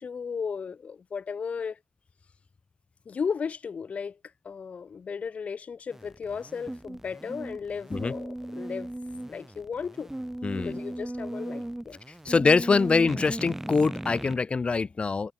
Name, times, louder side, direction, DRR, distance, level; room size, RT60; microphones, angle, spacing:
voice 1, 0.0-1.8 3.1-4.2 4.4-8.9 9.3-10.1 10.6-12.0, left 6 dB, 65° left, 1.2 m, -35 dB
sound 1, 5.9-14.4, right 1 dB, 15° right, 2.1 m, -37 dB
voice 2, 10.4-10.8 12.3-15.3, left 4 dB, 50° left, 0.6 m, -24 dB
supercardioid pair, 40°, 3 cm